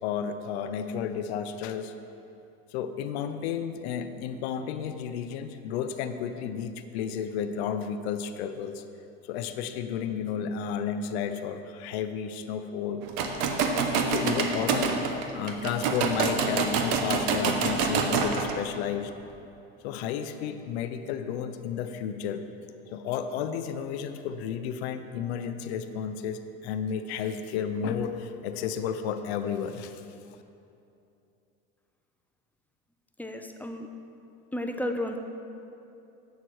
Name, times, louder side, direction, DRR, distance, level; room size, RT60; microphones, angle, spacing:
voice 1, 0.0-1.9 2.7-8.8 9.3-13.0 14.1-19.1 19.8-22.4 22.9-30.0 30.3-30.4, left 7 dB, 80° left, 9 dB, 0.6 m, -32 dB
sound 1, 13.0-18.6, right 5 dB, 65° right, 0.9 m, -27 dB
voice 2, 33.2-33.9 34.5-35.2, left 1 dB, 5° left, 4 dB, 0.4 m, -32 dB
8.3 x 6.4 x 4.5 m, 2.8 s
supercardioid pair, 110°, 31 cm